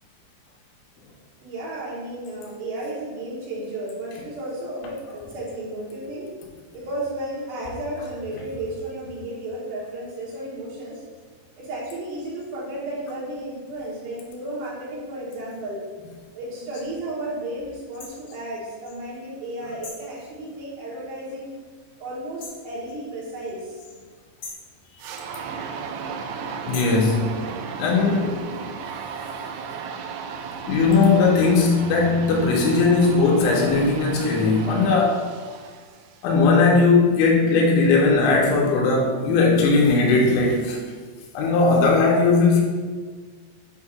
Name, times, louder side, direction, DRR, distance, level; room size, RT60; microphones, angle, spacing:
voice 1, 1.4-6.3 6.7-11.0 11.6-15.9 16.3-21.5 22.0-23.8, right 1 dB, 70° right, -7 dB, 3.3 m, -33 dB
sound 1, 18.0-18.1 19.8-20.1 22.4-22.7 24.4-24.7 26.7-27.0, left 3 dB, 55° left, 2.3 m, -38 dB
sound 2, 25.0-36.3, right 6 dB, 90° right, 2.3 m, -35 dB
voice 2, 26.7-27.4 27.8-28.5 30.7-35.3 36.2-40.8 41.3-42.6, left 3 dB, 90° left, -1 dB, 3.1 m, -18 dB
7.8 x 2.8 x 4.7 m, 1.5 s
omnidirectional pair, 5.3 m